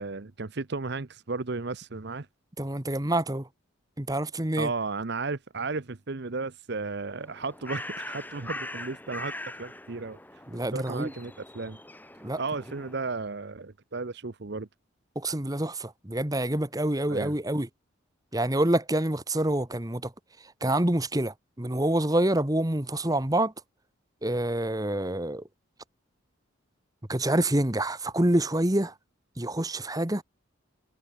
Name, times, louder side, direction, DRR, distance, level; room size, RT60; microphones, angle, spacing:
voice 1, 0.0-2.3 4.6-9.3 9.6-10.2 10.7-11.8 12.4-14.7 17.1-17.3, right 3 dB, 55° right, 0.9 m, -34 dB
voice 2, 2.6-3.5 4.0-4.7 10.5-11.1 12.2-12.4 15.1-17.7 18.3-20.1 20.6-23.5 24.2-25.4 27.1-28.9 29.4-30.2, right 1 dB, 20° right, 1.4 m, -27 dB
Bird, 7.1-13.2, left 1 dB, 10° left, 2.7 m, -42 dB
head